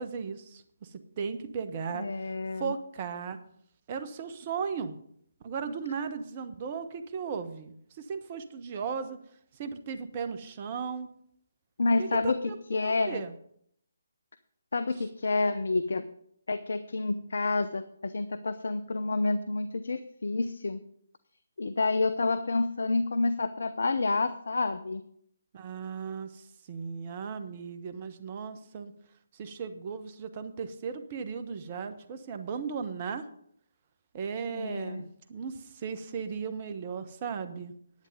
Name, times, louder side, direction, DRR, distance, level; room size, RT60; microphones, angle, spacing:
voice 1, 0.0-2.1 2.6-3.4 3.9-5.0 5.4-9.2 9.5-11.1 12.0-13.3 25.5-28.9 29.3-33.3 34.1-37.7, right 6 dB, 35° right, 9 dB, 1.1 m, -36 dB
voice 2, 1.9-2.7 11.8-12.4 12.7-13.2 14.7-16.0 16.5-20.8 21.6-25.0 34.5-35.0, left 3 dB, 60° left, 12 dB, 0.6 m, -29 dB
10.5 x 9.1 x 5.3 m, 0.67 s
figure-of-eight pair, 145°, 0 cm